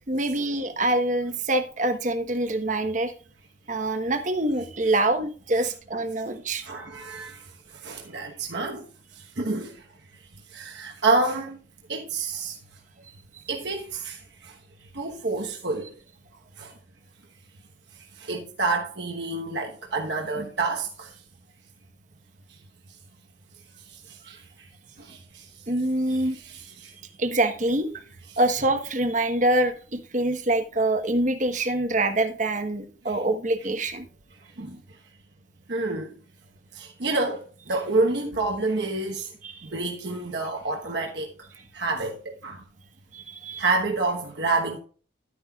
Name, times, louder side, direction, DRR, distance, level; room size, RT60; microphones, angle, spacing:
voice 1, 0.1-3.1 3.7-6.6 20.4-20.5 25.7-26.4 27.2-28.0 28.4-34.1 39.4-39.7 43.1-43.7, right 1 dB, 40° right, 1.1 m, -25 dB
voice 2, 6.6-8.9 9.1-9.8 10.5-11.6 11.9-12.6 13.5-14.6 14.9-15.9 16.6-16.7 17.9-21.1 23.8-24.7 25.0-25.5 26.3-26.9 33.1-33.2 34.6-34.8 35.7-36.2 36.7-39.3 39.6-42.6 43.6-44.8, right 3 dB, 60° right, 1.2 m, -29 dB
12.0 x 9.5 x 2.4 m
head